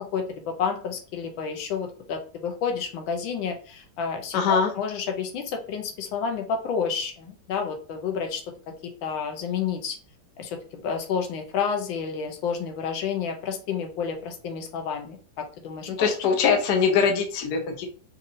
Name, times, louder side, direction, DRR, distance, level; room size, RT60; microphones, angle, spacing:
voice 1, 0.0-8.4 9.0-10.0 10.4-16.1, left 6 dB, 85° left, 3 dB, 1.4 m, -30 dB
voice 2, 4.3-4.7 15.9-17.9, left 6 dB, 65° left, 3 dB, 1.2 m, -22 dB
4.1 x 2.7 x 2.6 m, 0.40 s
omnidirectional pair, 2.1 m